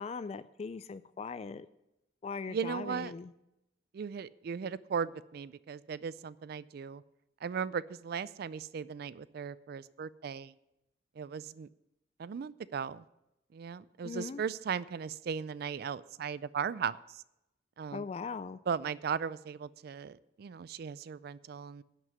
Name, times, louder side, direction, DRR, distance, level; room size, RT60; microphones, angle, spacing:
voice 1, 0.0-1.7 2.2-3.3 14.0-14.4 17.9-18.6, left 5 dB, 35° left, 15 dB, 0.3 m, -40 dB
voice 2, 2.5-3.1 3.9-7.0 7.4-10.5 11.2-11.7 12.2-13.0 13.5-17.2 17.8-18.1 18.7-21.8, right 6 dB, 55° right, 18 dB, 0.3 m, -37 dB
10.5 x 6.2 x 7.9 m, 0.89 s
head